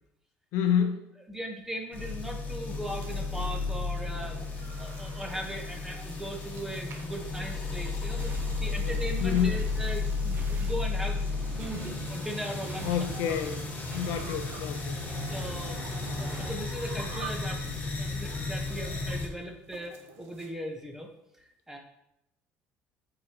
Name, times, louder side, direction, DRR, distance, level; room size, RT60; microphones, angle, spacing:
voice 1, 0.5-1.1 8.8-9.6 12.8-14.9 16.9-17.0, left 8 dB, 75° left, 0.7 m, -29 dB
voice 2, 1.3-11.2 11.5-13.1 15.3-15.8 16.2-17.6 17.9-21.1 21.7-21.8, right 1 dB, 10° right, 1.2 m, -38 dB
sound 1, 1.9-19.3, left 4 dB, 35° left, 1.8 m, -33 dB
sound 2, 2.9-20.5, right 5 dB, 60° right, 1.2 m, -51 dB
sound 3, 8.2-16.6, right 4 dB, 40° right, 1.0 m, -43 dB
8.6 x 4.9 x 3.0 m
cardioid pair, 110°, 5 cm